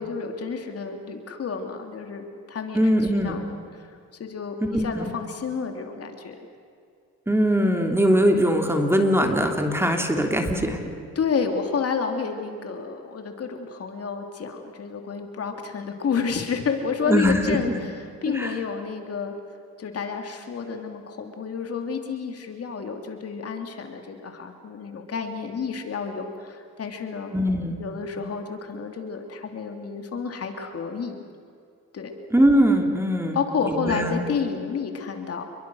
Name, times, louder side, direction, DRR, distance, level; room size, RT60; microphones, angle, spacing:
voice 1, 0.0-6.3 11.1-17.9 18.2-19.3 19.8-27.3 27.8-31.2 31.9-32.1 33.3-35.4, left 5 dB, 50° left, 4 dB, 3.0 m, -30 dB
voice 2, 2.7-3.4 4.7-5.1 7.3-10.8 17.1-17.8 18.3-18.5 27.3-27.8 32.3-33.4 33.6-34.3, equal, 10° right, 3 dB, 3.1 m, -21 dB
28.5 x 22.5 x 6.4 m, 2.4 s
cardioid pair, 90°, 30 cm